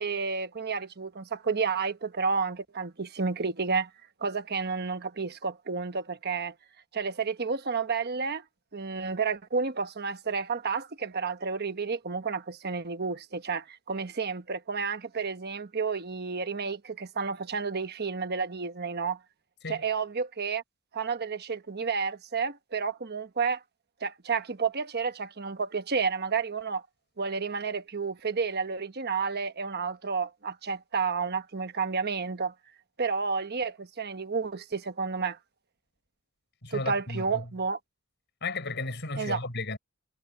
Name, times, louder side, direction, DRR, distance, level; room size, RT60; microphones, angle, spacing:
voice 1, 0.0-3.9 4.2-6.5 6.9-8.4 8.7-19.2 19.7-20.6 20.9-23.6 24.0-26.8 27.2-32.5 33.0-35.4 36.7-37.8 39.2-39.4, right 5 dB, 50° right, 1.1 m, -31 dB
voice 2, 36.6-37.5 38.4-39.8, left 3 dB, 55° left, 5.9 m, -34 dB
head